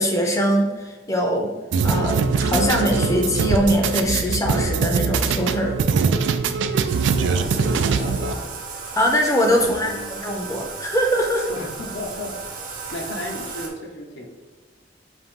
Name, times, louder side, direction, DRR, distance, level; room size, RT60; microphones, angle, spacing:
voice 1, 0.0-1.5 1.8-5.7 9.0-11.5, equal, 15° left, 1 dB, 0.6 m, -22 dB
sound 1, 1.7-8.3, right 5 dB, 80° right, 0.3 m, -22 dB
sound 2, 2.5-6.9 7.2-7.6, left 6 dB, 90° left, 1.2 m, -36 dB
Bathtub (filling or washing), 6.9-13.7, right 4 dB, 50° right, 0.8 m, -35 dB
voice 2, 7.1-8.6 9.4-10.1 11.5-12.3 12.9-14.3, left 1 dB, 70° left, 1 dB, 0.8 m, -33 dB
5.0 x 2.7 x 3.6 m, 1.3 s
head